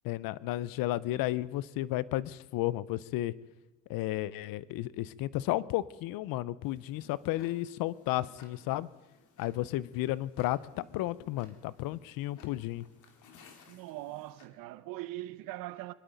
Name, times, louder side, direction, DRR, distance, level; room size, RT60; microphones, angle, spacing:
voice 1, 0.0-3.3 3.9-8.9 9.4-12.8, left 16 dB, 75° left, 0.7 m, -33 dB
Tick-tock, 6.6-14.5, left 5 dB, 60° left, 2.4 m, -59 dB
voice 2, 13.7-15.9, right 16 dB, 80° right, 0.9 m, -41 dB
24.5 x 11.5 x 5.2 m
cardioid pair, 110°, 34 cm